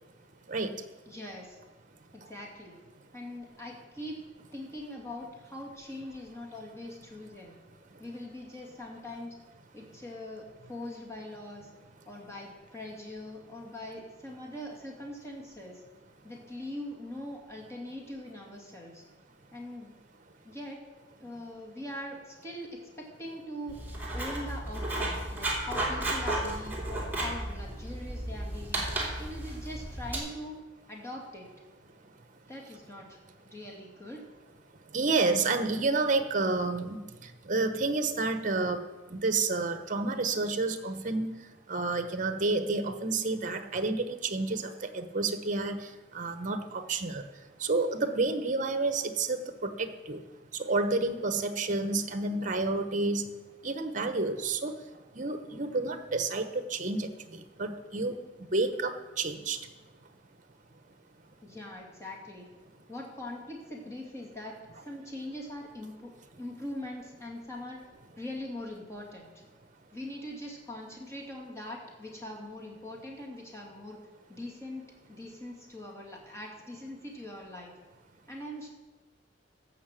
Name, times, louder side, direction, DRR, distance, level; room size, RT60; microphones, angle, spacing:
voice 1, 1.1-1.6 2.1-2.8 3.1-4.2 4.5-7.5 8.0-9.3 9.7-11.7 12.1-15.8 16.2-19.0 19.5-19.9 20.4-20.8 21.2-23.8 24.1-28.9 29.2-30.6 30.9-31.5 32.5-33.2 33.4-34.2 61.4-62.5 62.9-64.6 64.8-66.1 66.4-67.8 68.2-69.4 69.9-74.0 74.3-77.7 78.3-78.7, left 1 dB, 15° left, -2 dB, 2.5 m, -42 dB
Writing, 23.7-30.2, right 1 dB, 10° right, 2.8 m, -33 dB
voice 2, 34.9-37.0 37.5-41.3 41.7-45.8 46.1-47.2 47.6-50.2 50.6-53.2 53.6-54.7 55.1-58.2 58.5-59.6, right 3 dB, 45° right, 8 dB, 1.0 m, -30 dB
14.5 x 5.8 x 7.5 m, 1.2 s
head